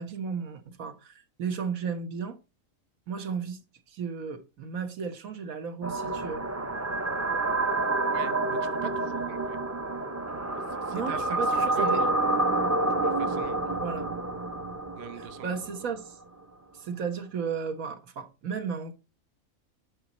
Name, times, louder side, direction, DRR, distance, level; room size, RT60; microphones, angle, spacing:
voice 1, 0.0-2.4 3.1-3.6 3.9-6.4 10.9-12.0 13.8-14.1 15.2-16.2 16.7-18.9, right 6 dB, 85° right, 1.6 m, -34 dB
sound 1, 5.8-15.9, right 2 dB, 25° right, 0.3 m, -28 dB
voice 2, 8.1-9.6 10.6-12.1 13.0-13.8 15.0-15.7, right 10 dB, 55° right, 0.9 m, -41 dB
9.6 x 5.5 x 4.1 m
omnidirectional pair, 1.4 m